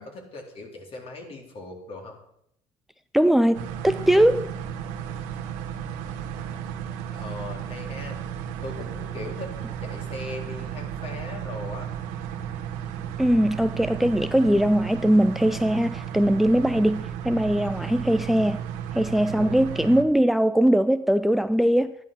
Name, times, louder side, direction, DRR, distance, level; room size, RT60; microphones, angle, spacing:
voice 1, 0.0-2.2 7.1-8.2 8.6-9.5 9.8-11.9 19.4-19.6, left 2 dB, 50° left, 4.0 m, -39 dB
voice 2, 3.1-4.5 13.2-18.6 18.9-21.9, right 1 dB, ahead, 0.4 m, -21 dB
sound 1, 3.5-20.0, right 9 dB, 90° right, 1.6 m, -34 dB
12.5 x 11.0 x 6.1 m
cardioid pair, 100°, 13 cm